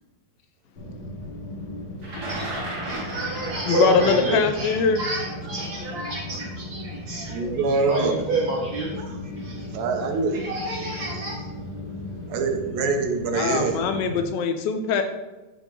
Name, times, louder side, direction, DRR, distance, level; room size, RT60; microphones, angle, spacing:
sound 1, 0.8-14.2, left 1 dB, 30° left, 3.1 m, -36 dB
Thunder, 2.0-8.0 9.0-9.1 10.2-10.4 10.7-11.2, right 1 dB, 30° right, 2.1 m, -37 dB
voice 1, 2.1-9.7 10.3-11.5, right 2 dB, 55° right, -2 dB, 2.0 m, -29 dB
voice 2, 3.7-5.0 13.3-15.0, left 5 dB, 85° left, 7 dB, 3.2 m, -22 dB
voice 3, 7.3-8.2 9.7-10.4 12.3-13.8, right 4 dB, 80° right, 3 dB, 3.3 m, -24 dB
12.5 x 6.4 x 4.0 m, 1.1 s
omnidirectional pair, 5.0 m